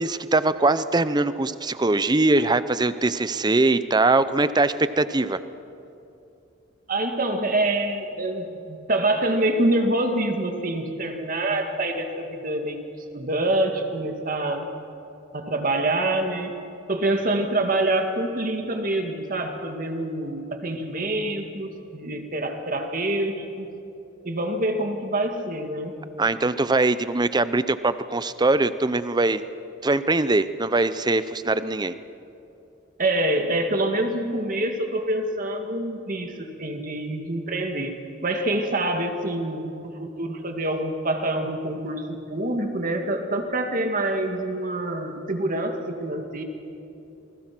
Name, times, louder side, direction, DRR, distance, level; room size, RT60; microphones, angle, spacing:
voice 1, 0.0-5.4 26.2-29.4 29.8-31.9, right 2 dB, 20° right, 14 dB, 0.6 m, -22 dB
voice 2, 6.9-12.8 13.1-14.7 15.3-16.6 16.9-23.7 24.2-26.0 33.0-37.9 38.2-39.7 40.0-46.4, right 1 dB, 45° right, 4 dB, 2.2 m, -26 dB
28.0 x 20.0 x 6.1 m, 2.8 s
head